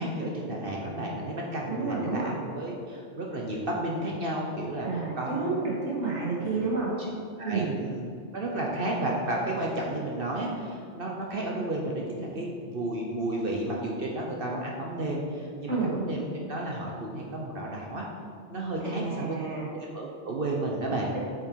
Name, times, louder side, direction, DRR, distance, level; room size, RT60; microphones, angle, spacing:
voice 1, 0.0-6.0 6.4-6.7 7.0-7.1 7.4-8.1 8.3-18.1 18.5-19.4 19.7-21.1, right 1 dB, 55° right, -1 dB, 1.2 m, -32 dB
voice 2, 1.7-2.4 4.8-6.9 7.4-7.7 15.7-15.9 18.8-19.7 21.1-21.2, right 4 dB, 70° right, -5 dB, 2.3 m, -30 dB
8.8 x 6.4 x 4.7 m, 2.3 s
omnidirectional pair, 1.2 m